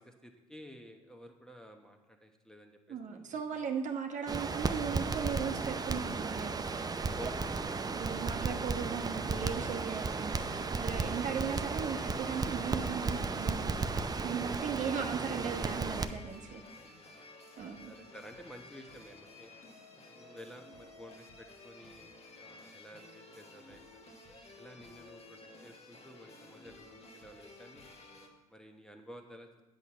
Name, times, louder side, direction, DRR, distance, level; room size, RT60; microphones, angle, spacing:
voice 1, 0.0-3.7 6.8-7.4 14.1-14.3 16.7-17.2 17.8-19.5 20.1-24.0 24.6-27.9 28.5-29.5, equal, 5° left, 4 dB, 1.2 m, -53 dB
voice 2, 2.9-6.9 7.1-7.3 7.9-13.6 14.2-16.6 17.6-17.9, right 7 dB, 50° right, 3 dB, 1.1 m, -37 dB
Crackle, 4.3-16.1, right 4 dB, 25° right, 0.6 m, -34 dB
sound 1, 9.6-28.3, left 2 dB, 40° left, 1.6 m, -54 dB
8.3 x 6.3 x 5.7 m, 1.0 s
hypercardioid pair, 60°, 17 cm